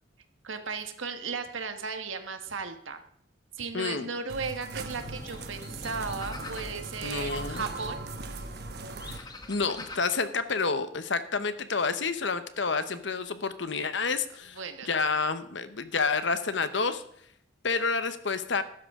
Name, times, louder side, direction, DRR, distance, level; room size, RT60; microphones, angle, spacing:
voice 1, 0.4-3.0 3.6-8.0 14.6-14.9, right 5 dB, 75° right, 7 dB, 1.5 m, -35 dB
voice 2, 3.7-4.1 7.0-7.6 9.1-14.6 14.8-17.0 17.6-18.6, left 4 dB, 60° left, 11 dB, 0.9 m, -29 dB
sound 1, 4.3-9.2, right 2 dB, 50° right, 1.0 m, -39 dB
sound 2, 5.0-10.0, left 2 dB, 20° left, 1.1 m, -46 dB
15.5 x 12.5 x 3.7 m, 0.68 s
head